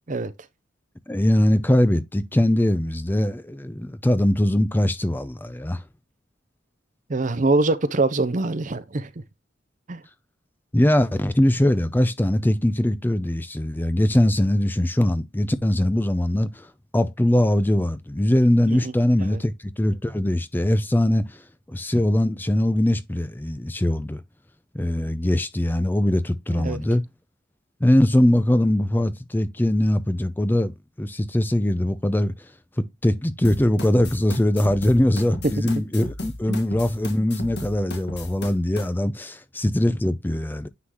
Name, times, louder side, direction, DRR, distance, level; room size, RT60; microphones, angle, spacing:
voice 1, 1.1-5.8 10.7-21.4 21.7-24.2 24.7-27.0 27.8-30.7 31.0-32.5 32.8-40.7, left 1 dB, 10° left, 0.4 m, -21 dB
voice 2, 7.1-9.1 9.9-10.0 18.7-18.9 19.3-19.4 26.5-26.8 35.6-35.7 36.5-36.6, right 2 dB, 40° right, 0.7 m, -24 dB
sound 1, 33.4-38.9, left 1 dB, 60° left, 1.7 m, -35 dB
9.5 x 3.9 x 2.9 m
head